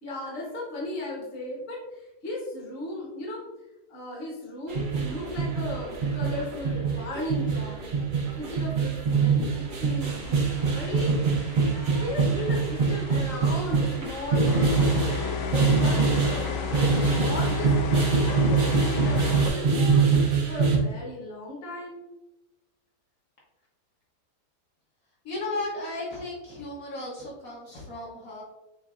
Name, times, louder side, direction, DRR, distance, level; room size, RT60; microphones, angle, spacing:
voice 1, 0.0-3.4 3.9-11.2 11.9-14.6 15.5-16.4 16.8-17.7 18.2-22.0, left 2 dB, 40° left, -3 dB, 1.2 m, -36 dB
sound 1, 4.7-20.8, right 5 dB, 55° right, 0.5 m, -24 dB
sound 2, 10.0-19.5, left 6 dB, 90° left, 1.2 m, -33 dB
voice 2, 25.2-28.4, left 2 dB, 60° left, -5 dB, 1.4 m, -35 dB
7.0 x 2.6 x 2.4 m, 1.0 s
omnidirectional pair, 1.8 m